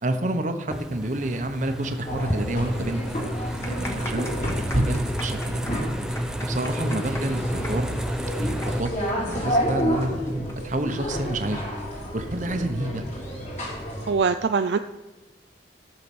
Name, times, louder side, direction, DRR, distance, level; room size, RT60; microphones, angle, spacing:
voice 1, 0.0-3.0 3.6-4.3 4.7-5.6 6.4-7.9 8.4-8.9 9.2-10.1 10.6-11.6 12.1-13.0, right 1 dB, 45° right, 7 dB, 1.0 m, -29 dB
sound 1, 0.7-8.8, equal, 5° right, 0.5 m, -31 dB
sound 2, 2.1-14.1, equal, 40° left, 2.9 m, -30 dB
sound 3, 3.4-10.6 10.8-10.9 11.7-12.0, left 1 dB, 15° left, 1.2 m, -39 dB
voice 2, 14.1-14.8, right 5 dB, 70° right, 9 dB, 0.4 m, -22 dB
14.5 x 6.9 x 6.0 m, 1.1 s
head